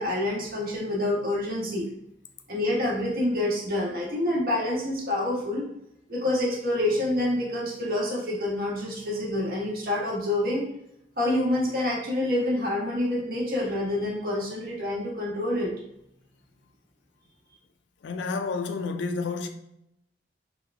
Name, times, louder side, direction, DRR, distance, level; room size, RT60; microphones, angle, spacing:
voice 1, 0.0-1.8 2.5-5.7 6.1-10.7 11.2-15.7, left 1 dB, 55° right, 1.2 m, -27 dB
voice 2, 18.0-19.5, left 4 dB, 80° left, 0.4 m, -30 dB
3.3 x 2.2 x 3.3 m
head